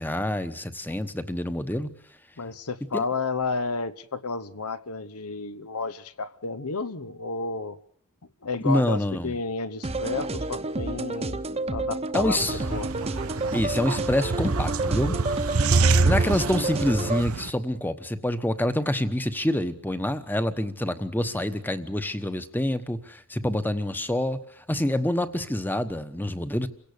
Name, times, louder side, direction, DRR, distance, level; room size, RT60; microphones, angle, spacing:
voice 1, 0.0-1.9 2.9-3.0 8.6-9.3 12.1-12.6 13.5-15.2 16.0-24.4 24.7-26.7, left 1 dB, 10° left, 1.1 m, -27 dB
voice 2, 2.4-7.8 8.4-11.4 11.7-12.4 12.7-12.9, left 4 dB, 85° left, 1.1 m, -31 dB
sound 1, 9.8-17.2, right 2 dB, 30° right, 1.0 m, -30 dB
sound 2, 12.4-17.5, right 3 dB, 70° right, 0.9 m, -26 dB
28.5 x 17.5 x 6.8 m
head